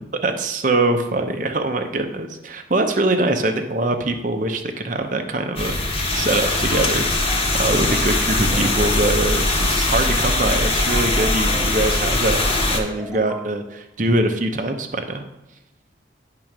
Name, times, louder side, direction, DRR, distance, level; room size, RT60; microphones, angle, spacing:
voice 1, 0.2-7.3 7.6-12.4 12.7-15.2, right 2 dB, 45° right, 5 dB, 0.7 m, -23 dB
sound 1, 5.6-12.8, left 2 dB, 30° left, 1.2 m, -21 dB
sound 2, 6.7-6.9 7.3-7.5 7.9-8.2 8.5-8.7 9.1-9.3 9.7-9.9 10.3-10.5 10.9-13.5, right 1 dB, 5° right, 0.5 m, -39 dB
10.5 x 3.8 x 6.0 m, 0.99 s
head